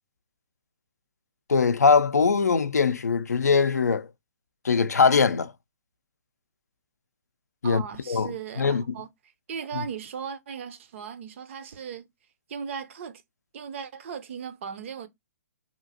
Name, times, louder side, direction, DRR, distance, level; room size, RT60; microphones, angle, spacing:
voice 1, 1.5-4.1 4.6-5.5 7.6-8.3 8.6-8.8 9.7-9.8, left 5 dB, 80° left, 0.4 m, -21 dB
voice 2, 7.6-9.1 9.5-12.1 12.5-13.2 13.5-15.1, right 7 dB, 50° right, 0.5 m, -37 dB
2.9 x 2.5 x 2.6 m
figure-of-eight pair, 130°, 9 cm